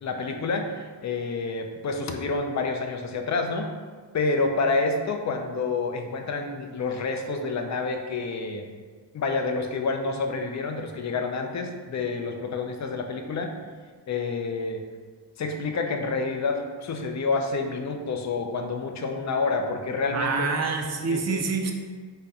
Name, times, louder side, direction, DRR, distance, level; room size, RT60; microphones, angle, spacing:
voice 1, 0.0-3.7 4.1-8.7 9.1-13.5 14.1-14.8 15.4-20.5 21.1-21.5, left 3 dB, 40° left, 4 dB, 0.4 m, -28 dB
voice 2, 20.1-21.7, right 4 dB, 40° right, 3 dB, 0.4 m, -26 dB
4.0 x 2.2 x 3.5 m, 1.5 s
cardioid pair, 90°, 44 cm